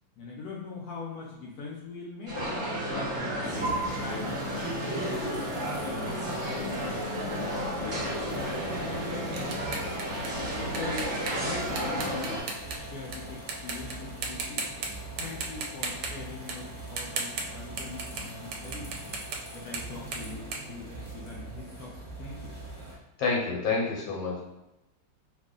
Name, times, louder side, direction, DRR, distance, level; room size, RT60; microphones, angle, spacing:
voice 1, 0.2-2.4 2.8-4.4 4.7-5.3 5.8-8.4 8.7-9.8 10.6-14.7 15.2-19.0 19.5-22.5, left 3 dB, 70° left, -3 dB, 0.9 m, -42 dB
sound 1, 2.3-12.4, equal, 30° right, 1.1 m, -32 dB
sound 2, 3.4-23.0, right 1 dB, 20° left, 0.7 m, -42 dB
sound 3, 8.3-13.2 13.5-13.9 14.2-14.9 15.2-21.5, right 4 dB, 70° right, 1.1 m, -37 dB
voice 2, 23.2-24.4, left 4 dB, 90° left, -3 dB, 1.5 m, -28 dB
3.2 x 2.3 x 3.6 m, 0.95 s
omnidirectional pair, 2.1 m